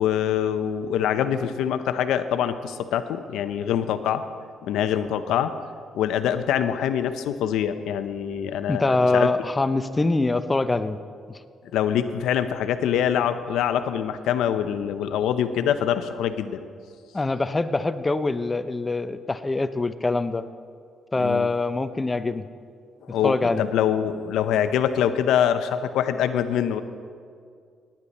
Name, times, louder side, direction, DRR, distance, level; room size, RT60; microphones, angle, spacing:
voice 1, 0.0-4.2 4.6-5.5 5.9-9.3 11.7-16.6 21.2-21.5 23.1-26.8, left 9 dB, 85° left, 10 dB, 0.7 m, -24 dB
voice 2, 8.7-11.0 11.3-11.4 17.1-20.4 21.1-22.5 23.2-23.7, left 2 dB, 20° left, 12 dB, 0.6 m, -24 dB
18.0 x 10.5 x 4.2 m, 2.2 s
cardioid pair, 90°, 0 cm